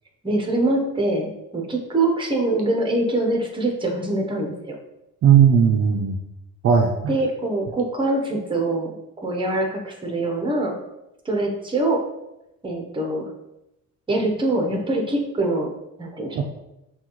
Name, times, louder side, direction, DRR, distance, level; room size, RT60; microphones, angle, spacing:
voice 1, 0.2-4.8 7.1-9.0 9.2-10.8 11.2-12.0 12.6-13.3 14.1-15.7 16.0-16.4, right 2 dB, 15° right, 1 dB, 0.9 m, -24 dB
voice 2, 5.2-6.2 6.6-7.1 16.3-16.4, right 7 dB, 50° right, 2 dB, 0.5 m, -16 dB
6.0 x 2.4 x 3.0 m, 0.91 s
cardioid pair, 110°, 30 cm